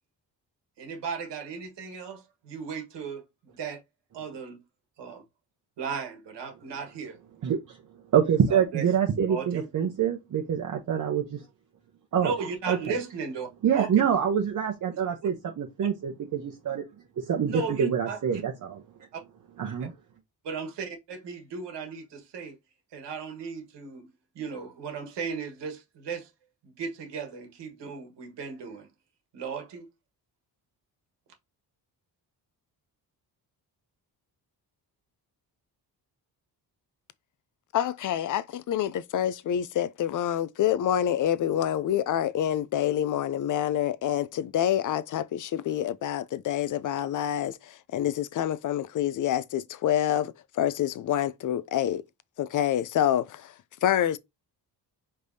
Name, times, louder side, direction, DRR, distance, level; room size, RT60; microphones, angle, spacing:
voice 1, 0.8-3.8 4.1-4.6 5.0-5.2 5.8-7.2 8.5-8.9 9.3-9.7 12.2-13.5 13.7-13.9 14.9-15.0 15.8-15.9 17.5-18.4 19.1-19.2 20.4-22.6 22.9-24.1 24.3-26.3 26.6-28.9 29.3-29.9, right 5 dB, 90° right, 1.5 m, -36 dB
voice 2, 7.4-7.8 8.1-11.4 12.1-12.3 12.7-12.8 13.6-16.8 17.2-18.8 19.6-19.9, right 8 dB, 50° right, 0.8 m, -26 dB
voice 3, 37.7-47.6 47.9-52.0 52.4-53.5 53.8-54.2, left 11 dB, 50° left, 0.4 m, -27 dB
5.0 x 3.3 x 2.7 m
cardioid pair, 115°, 41 cm